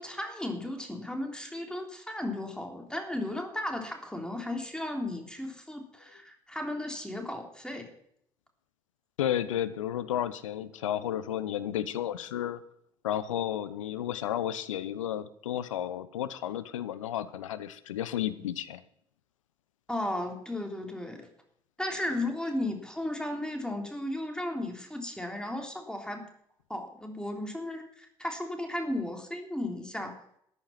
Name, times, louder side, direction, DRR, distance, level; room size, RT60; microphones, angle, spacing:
voice 1, 0.0-7.9 19.9-21.3 21.8-26.3 26.7-30.1, left 1 dB, 5° left, 3 dB, 3.3 m, -35 dB
voice 2, 9.2-12.6 13.0-18.8, left 11 dB, 80° left, 14 dB, 0.8 m, -32 dB
13.5 x 10.5 x 5.8 m, 0.68 s
figure-of-eight pair, 50°, 16 cm